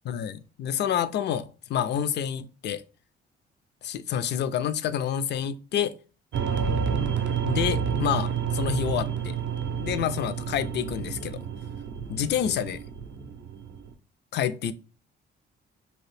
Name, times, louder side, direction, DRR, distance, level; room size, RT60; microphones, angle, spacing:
voice 1, 0.1-2.8 3.8-5.9 7.4-9.4 9.8-11.4 12.1-12.8 14.3-14.7, left 9 dB, 60° left, 0.4 m, -28 dB
sound 1, 6.3-13.9, right 7 dB, 65° right, 0.5 m, -29 dB
2.8 x 2.5 x 3.2 m
cardioid pair, 90°, 20 cm